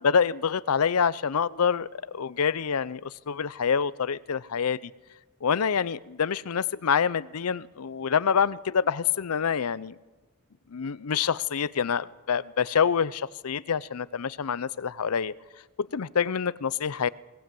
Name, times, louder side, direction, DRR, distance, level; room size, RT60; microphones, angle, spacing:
voice 1, 0.0-4.8 5.4-10.0 10.7-15.3 15.9-17.1, left 6 dB, 85° left, 0.6 m, -26 dB
21.0 x 19.5 x 7.6 m
head